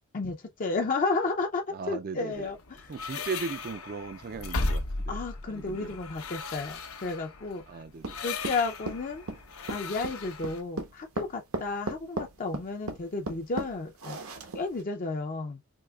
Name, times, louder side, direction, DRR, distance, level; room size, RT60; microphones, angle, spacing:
voice 1, 0.1-2.6 5.1-7.6 8.2-9.2 9.7-14.2 14.5-15.6, left 3 dB, 40° left, 0.5 m, -32 dB
voice 2, 1.7-2.5 2.9-5.2 5.4-6.0 7.7-8.2, right 4 dB, 45° right, 0.4 m, -38 dB
sound 1, 2.3-10.6, left 3 dB, 75° left, 0.8 m, -36 dB
sound 2, 8.0-14.8, right 2 dB, 80° right, 0.9 m, -36 dB
4.6 x 2.8 x 2.3 m
head